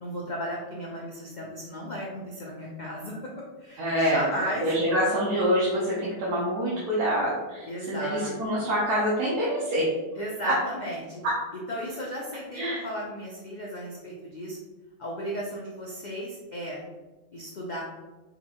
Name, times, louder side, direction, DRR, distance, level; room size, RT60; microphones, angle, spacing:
voice 1, 0.0-3.3 3.6-4.7 7.7-8.4 10.2-11.2 11.7-14.6 15.0-16.8 17.3-17.8, equal, 60° left, -3 dB, 0.4 m, -35 dB
voice 2, 3.8-4.2 4.6-9.9 10.4-10.5 11.2-11.3 12.5-12.9, equal, 90° right, -7 dB, 1.5 m, -26 dB
5.3 x 2.6 x 2.8 m, 1.2 s
omnidirectional pair, 1.6 m